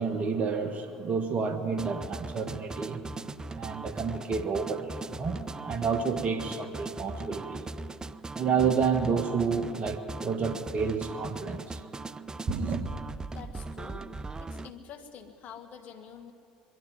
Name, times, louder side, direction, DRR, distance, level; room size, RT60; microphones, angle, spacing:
voice 1, 0.0-3.0 3.5-7.7 8.3-11.8 12.5-12.9, right 5 dB, 40° right, 7 dB, 1.6 m, -30 dB
sound 1, 1.8-14.7, right 3 dB, 20° right, 0.5 m, -39 dB
voice 2, 13.3-14.0 14.4-16.3, left 7 dB, 50° left, 7 dB, 2.0 m, -46 dB
22.5 x 13.0 x 9.5 m, 2.5 s
hypercardioid pair, 75°, 4 cm